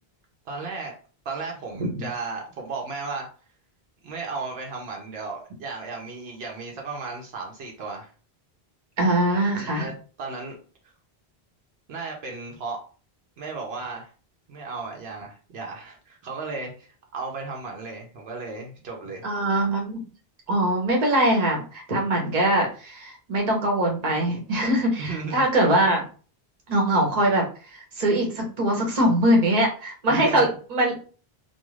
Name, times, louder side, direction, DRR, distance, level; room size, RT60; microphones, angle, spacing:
voice 1, 0.5-1.0 1.2-3.3 4.0-8.1 9.6-9.9 10.2-10.6 10.8-10.9 11.9-12.8 13.4-14.1 14.5-19.3 25.0-25.4 30.1-30.5, right 4 dB, 75° right, 0 dB, 0.9 m, -35 dB
voice 2, 9.0-9.9 19.2-20.0 20.5-26.0 26.7-27.4 27.7-31.0, right 1 dB, 45° right, 0 dB, 0.9 m, -22 dB
2.4 x 2.3 x 3.1 m, 0.38 s
omnidirectional pair, 1.1 m